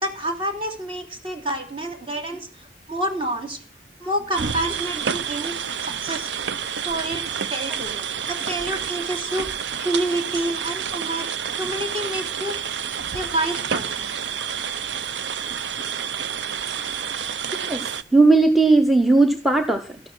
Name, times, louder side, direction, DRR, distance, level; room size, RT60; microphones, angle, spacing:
voice 1, 0.0-2.5 2.9-3.6 4.0-6.3 6.8-7.2 7.5-9.5 9.8-11.3 11.6-12.5 13.1-14.1, right 1 dB, 30° right, 3 dB, 2.9 m, -28 dB
sound 1, 4.3-18.0, right 7 dB, 85° right, 0.7 m, -29 dB
voice 2, 17.7-20.0, right 3 dB, ahead, 8 dB, 0.9 m, -17 dB
13.0 x 11.5 x 6.1 m, 0.42 s
head